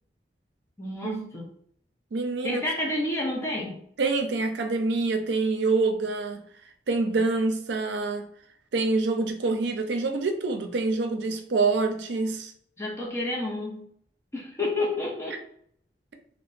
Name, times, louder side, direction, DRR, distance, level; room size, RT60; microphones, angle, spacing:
voice 1, 0.8-1.5 2.4-3.8 12.8-13.8 14.3-15.4, left 2 dB, 15° left, -3 dB, 0.4 m, -30 dB
voice 2, 2.1-2.6 4.0-6.4 6.9-8.3 8.7-12.5, right 3 dB, 80° right, 5 dB, 0.4 m, -26 dB
2.8 x 2.1 x 2.4 m, 0.65 s
head